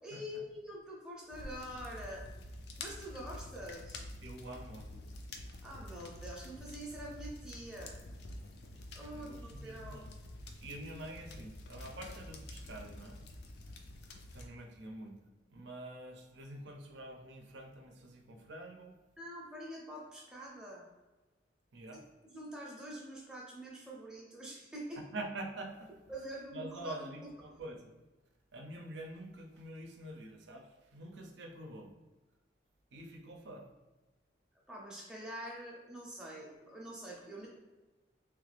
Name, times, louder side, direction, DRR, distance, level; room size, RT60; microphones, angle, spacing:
voice 1, 0.0-2.3 2.8-4.0 5.6-8.0 8.9-10.0 19.2-20.9 22.2-25.0 26.1-27.1 34.7-37.5, equal, 5° right, -4 dB, 0.6 m, -45 dB
sound 1, 1.3-14.5, left 1 dB, 60° left, 0.4 m, -48 dB
voice 2, 4.2-5.1 8.4-8.6 9.1-10.1 10.6-13.2 14.3-15.2 15.5-19.0 21.7-22.0 25.0-25.9 26.5-27.9 28.5-31.9 32.9-33.7, right 1 dB, 75° right, 2 dB, 0.5 m, -46 dB
3.1 x 2.4 x 3.2 m, 1.2 s
head